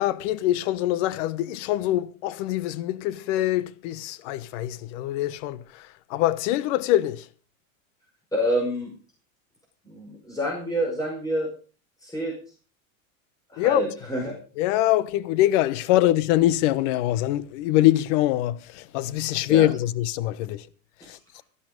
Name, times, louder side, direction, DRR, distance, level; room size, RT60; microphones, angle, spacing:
voice 1, 0.0-7.3 13.6-13.8 14.6-20.7 21.0-21.2, left 14 dB, 60° left, 1.1 m, -24 dB
voice 2, 8.3-8.9 9.8-11.5 12.0-12.3 13.5-14.4 19.5-19.7 21.0-21.1, equal, 10° left, 4.9 m, -27 dB
13.0 x 12.0 x 5.2 m
hypercardioid pair, 110°, 41 cm